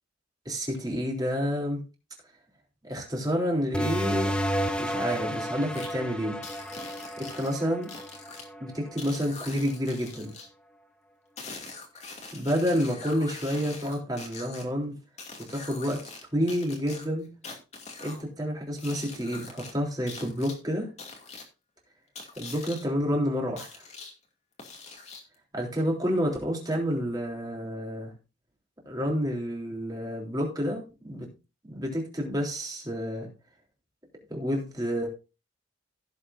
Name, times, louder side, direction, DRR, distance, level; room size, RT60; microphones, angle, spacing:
voice 1, 0.4-1.8 2.8-4.4 4.8-6.4 7.2-7.9 8.6-10.3 12.3-15.0 15.5-17.3 18.0-20.9 22.4-23.8 25.5-28.1 28.8-31.3 31.7-33.3 34.3-35.1, equal, 20° right, 0 dB, 3.3 m, -29 dB
sound 1, 3.7-8.9, equal, 5° left, 0.9 m, -31 dB
sound 2, 5.7-5.9 6.4-8.4 9.0-10.5 11.4-14.6 15.2-16.2 16.5-18.2 18.8-19.7 20.1-20.5 21.0-21.4 22.1-22.8 23.6-24.1 24.6-25.3, left 4 dB, 35° left, 2.4 m, -43 dB
16.5 x 7.5 x 2.6 m, 0.30 s
head